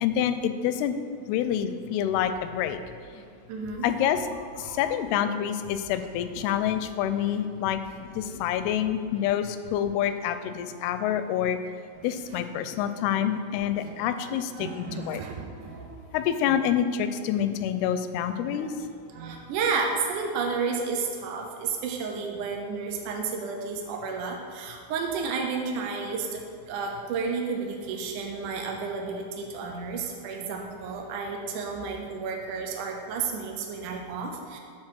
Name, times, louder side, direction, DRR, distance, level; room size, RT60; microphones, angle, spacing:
voice 1, 0.0-1.0 1.3-2.8 3.8-4.3 4.6-11.6 12.0-15.2 16.1-18.7, left 9 dB, 90° left, 10 dB, 2.5 m, -27 dB
Drum kit / Drum, 2.1-2.4 2.6-3.4 3.6-3.9 4.1-7.3 7.6-8.9 9.1-9.3 9.6-10.0, right 4 dB, 55° right, 2.3 m, -49 dB
voice 2, 3.5-3.9 4.6-4.8 8.2-8.5 12.0-12.1 13.8-16.0 16.5-16.6 18.4-18.7 19.1-26.4 26.7-34.6, right 5 dB, 75° right, 1 dB, 1.9 m, -32 dB
9.6 x 4.3 x 6.4 m, 2.2 s
omnidirectional pair, 4.4 m